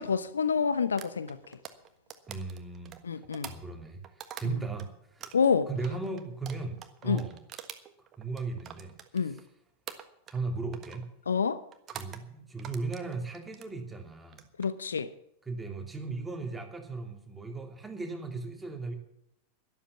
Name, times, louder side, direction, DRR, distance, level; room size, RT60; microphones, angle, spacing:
voice 1, 0.0-1.4 3.0-3.5 5.3-5.7 7.1-7.2 9.1-9.4 11.3-11.6 14.6-15.1, left 6 dB, 70° left, 0.7 m, -27 dB
sound 1, 1.0-4.9 5.2-9.5 9.9-10.5 10.7-11.1 11.7-12.2 12.6-13.7 14.2-14.7, right 9 dB, 30° right, 1.4 m, -45 dB
voice 2, 2.3-5.3 5.7-7.4 8.0-9.5 10.3-11.1 11.9-14.5 15.4-18.9, right 3 dB, 10° right, 2.7 m, -37 dB
13.0 x 11.5 x 6.9 m
figure-of-eight pair, 90°, 0 cm